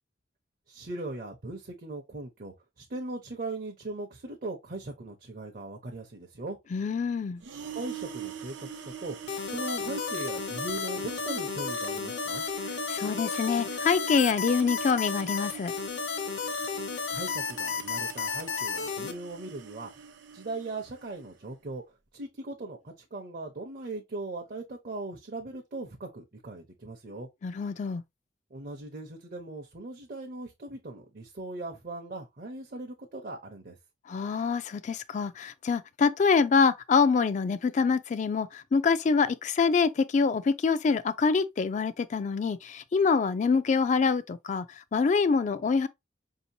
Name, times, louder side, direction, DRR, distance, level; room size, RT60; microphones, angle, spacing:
voice 1, 0.7-6.6 7.7-12.4 17.1-21.8 22.1-27.3 28.5-33.8, right 2 dB, 50° right, 0.7 m, -39 dB
voice 2, 6.7-7.4 12.9-15.7 27.4-28.0 34.1-45.9, left 5 dB, 40° left, 0.3 m, -25 dB
sound 1, 7.4-21.3, right 7 dB, 90° right, 0.7 m, -43 dB
sound 2, 9.3-19.1, left 5 dB, 70° left, 0.7 m, -33 dB
5.1 x 2.8 x 2.6 m
head